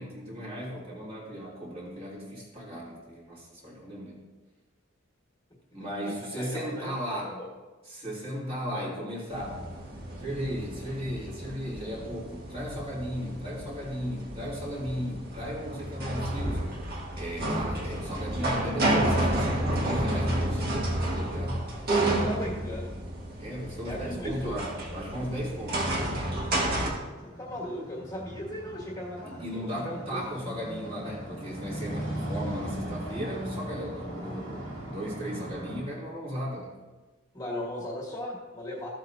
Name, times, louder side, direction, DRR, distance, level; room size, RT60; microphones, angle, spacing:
voice 1, 0.0-4.2 5.7-7.4 7.9-9.6 10.2-16.7 17.1-21.6 23.4-26.0 29.2-36.7, equal, 30° right, -6 dB, 3.2 m, -36 dB
voice 2, 6.4-7.5 8.7-8.9 22.0-22.9 23.9-24.5 27.4-30.2 37.3-38.9, left 1 dB, 20° left, -4 dB, 1.6 m, -37 dB
sound 1, 9.3-26.9, right 1 dB, 50° right, 1.7 m, -31 dB
sound 2, 27.2-35.8, right 1 dB, 80° right, 2.8 m, -38 dB
15.0 x 7.9 x 2.7 m, 1.3 s
head